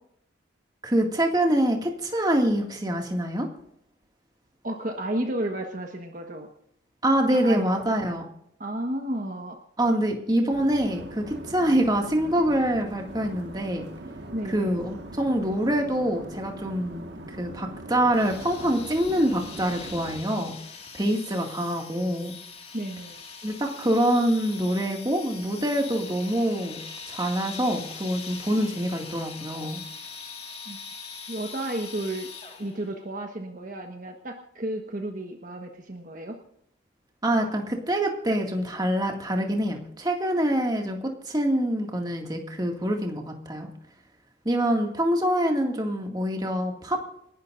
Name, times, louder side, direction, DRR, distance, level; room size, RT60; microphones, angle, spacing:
voice 1, 0.8-3.5 7.0-8.2 9.8-13.9 14.5-20.5 20.9-22.3 23.4-26.8 27.1-29.8 37.2-41.0 41.3-43.7 44.5-47.0, right 1 dB, 20° right, 2 dB, 2.1 m, -25 dB
voice 2, 4.6-6.5 7.3-7.8 8.6-9.6 14.3-14.8 22.7-23.2 30.7-30.8 31.3-32.3 32.6-36.3, right 1 dB, 45° right, 3 dB, 1.4 m, -32 dB
sound 1, 10.5-20.2, right 1 dB, 60° right, 1.7 m, -41 dB
sound 2, 18.1-32.9, left 5 dB, 30° left, 1.9 m, -42 dB
28.5 x 12.0 x 2.6 m, 0.72 s
head